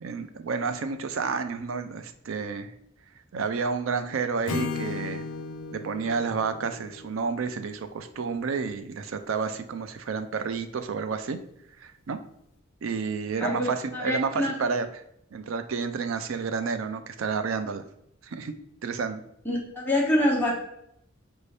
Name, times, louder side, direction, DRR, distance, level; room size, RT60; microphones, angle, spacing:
voice 1, 0.0-2.7 3.3-5.2 5.7-11.4 11.8-12.2 12.8-14.8 15.3-17.8 18.2-18.5 18.8-19.2, right 5 dB, 75° right, 9 dB, 0.4 m, -30 dB
Acoustic guitar / Strum, 4.5-8.4, left 4 dB, 75° left, 0.3 m, -36 dB
voice 2, 13.4-14.5 19.4-20.5, left 1 dB, 10° left, -4 dB, 1.0 m, -26 dB
5.2 x 2.7 x 3.2 m, 0.76 s
head